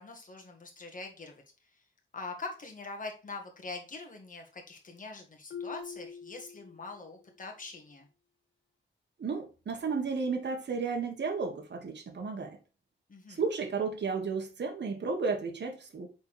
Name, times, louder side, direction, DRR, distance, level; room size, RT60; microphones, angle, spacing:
voice 1, 0.0-1.4 2.1-8.1 13.1-13.4, left 3 dB, 40° left, 2 dB, 1.7 m, -43 dB
Marimba xylophone, 5.5-7.2, left 6 dB, 70° left, 0.8 m, -44 dB
voice 2, 9.2-12.6 13.3-16.1, right 4 dB, 60° right, 2 dB, 1.5 m, -33 dB
5.9 x 4.1 x 4.8 m, 0.33 s
wide cardioid pair, 135°, 20 cm